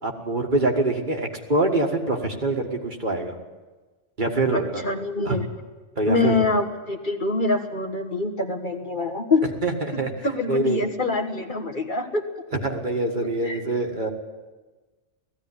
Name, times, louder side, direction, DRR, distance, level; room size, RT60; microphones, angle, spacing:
voice 1, 0.0-3.3 4.2-4.8 5.3-5.4 6.0-6.4 9.4-10.1 10.5-10.8 12.5-14.1, right 2 dB, 40° right, 2 dB, 1.9 m, -25 dB
voice 2, 4.5-5.4 6.0-9.5 9.9-12.2 13.4-13.7, left 3 dB, 45° left, 4 dB, 1.5 m, -25 dB
17.5 x 15.0 x 9.8 m, 1.3 s
omnidirectional pair, 1.2 m